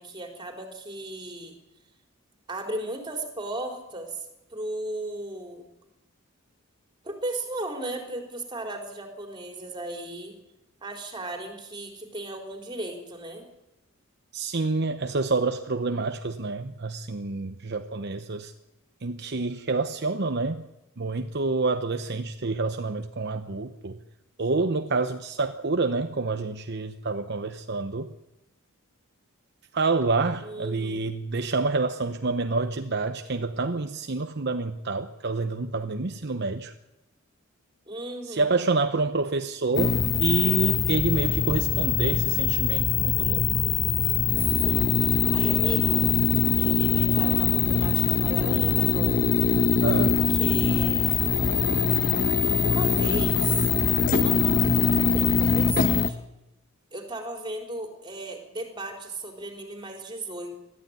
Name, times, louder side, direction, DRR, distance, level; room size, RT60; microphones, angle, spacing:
voice 1, 0.0-1.5 2.5-5.6 7.0-10.3 10.8-13.5 30.4-31.0 37.9-38.5 44.6-46.1 46.6-49.2 49.9-51.1 52.6-53.7 54.1-56.2 56.9-60.5, right 1 dB, 20° right, 3 dB, 4.1 m, -36 dB
voice 2, 14.3-18.5 19.0-20.7 21.0-24.0 24.4-28.1 29.7-36.7 38.3-43.5 49.8-50.2, right 3 dB, 55° right, 8 dB, 0.9 m, -28 dB
sound 1, 39.8-56.1, left 6 dB, 40° left, 1.0 m, -22 dB
21.5 x 14.5 x 9.6 m, 0.94 s
head